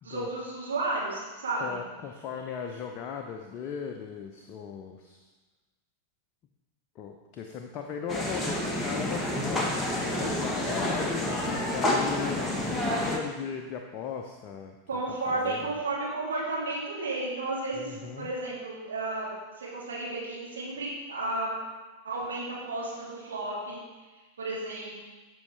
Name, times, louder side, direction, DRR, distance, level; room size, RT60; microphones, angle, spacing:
voice 1, 0.0-1.8 14.9-19.3 19.6-21.5 22.0-23.8 24.4-24.9, right 2 dB, 65° right, -5 dB, 2.9 m, -32 dB
voice 2, 1.6-5.2 7.0-12.6 12.9-14.7 15.1-15.7 17.8-18.3, left 7 dB, 35° left, 3 dB, 0.7 m, -38 dB
sound 1, 8.1-13.2, left 1 dB, 10° left, 1.3 m, -29 dB
13.0 x 5.4 x 3.4 m, 1.2 s
figure-of-eight pair, 90°, 0 cm